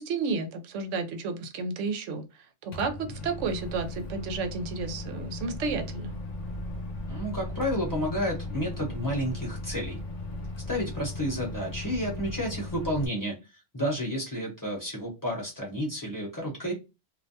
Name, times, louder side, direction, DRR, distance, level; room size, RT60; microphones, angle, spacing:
voice 1, 0.0-2.3 2.6-6.1, right 4 dB, 80° right, 0.9 m, -32 dB
Microwave oven, 2.7-13.1, left 2 dB, 60° left, 0.4 m, -37 dB
voice 2, 7.1-10.0 10.7-13.4 13.7-16.7, equal, 20° left, 0.8 m, -31 dB
2.5 x 2.1 x 2.6 m
omnidirectional pair, 1.2 m